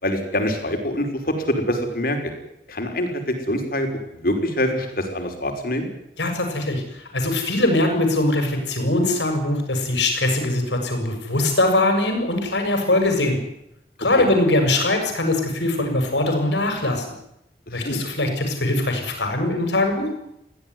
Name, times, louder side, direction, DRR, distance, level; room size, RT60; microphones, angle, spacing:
voice 1, 0.0-2.3 2.7-5.9 14.2-14.3 17.7-18.0, left 1 dB, 55° left, 5 dB, 5.5 m, -25 dB
voice 2, 6.2-13.4 14.0-17.1 17.7-20.1, left 2 dB, 85° left, 5 dB, 7.1 m, -21 dB
23.0 x 16.5 x 9.6 m, 0.82 s
head